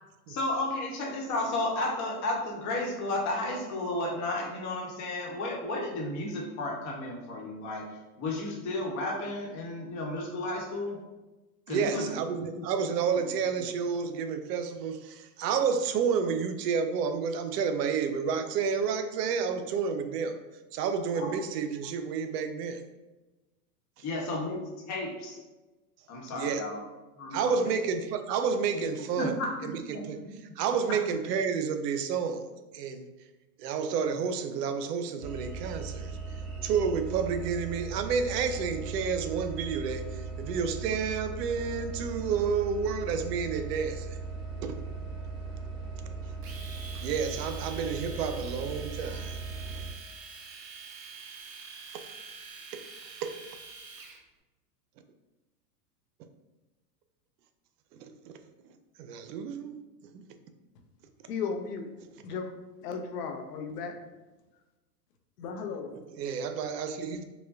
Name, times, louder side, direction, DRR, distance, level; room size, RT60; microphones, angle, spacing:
voice 1, 0.3-7.9 8.2-11.0 11.7-12.2 12.5-12.6 13.2-13.3 21.1-21.3 24.0-24.6 24.9-25.4 26.1-26.8 27.2-27.8 29.2-30.0, left 2 dB, 35° left, -2 dB, 0.9 m, -33 dB
voice 2, 11.7-20.4 20.7-22.8 24.0-24.1 26.3-26.6 27.3-30.2 30.6-32.5 32.7-33.1 33.6-36.2 36.6-44.2 44.6-44.8 47.0-49.4 49.7-49.8 52.7-52.8 53.2-53.3 57.9-58.3 59.0-59.7 60.1-60.3 66.2-67.2, right 6 dB, 85° right, 8 dB, 0.6 m, -30 dB
sound 1, 35.2-49.9, right 4 dB, 55° right, 0.9 m, -38 dB
Domestic sounds home sounds, 46.4-54.2, right 5 dB, 30° right, 0.4 m, -46 dB
voice 3, 61.3-61.9 62.2-62.5 62.8-64.0 65.4-66.0, left 5 dB, 80° left, 4 dB, 0.7 m, -35 dB
4.7 x 2.2 x 2.5 m, 1.1 s
supercardioid pair, 125°, 47 cm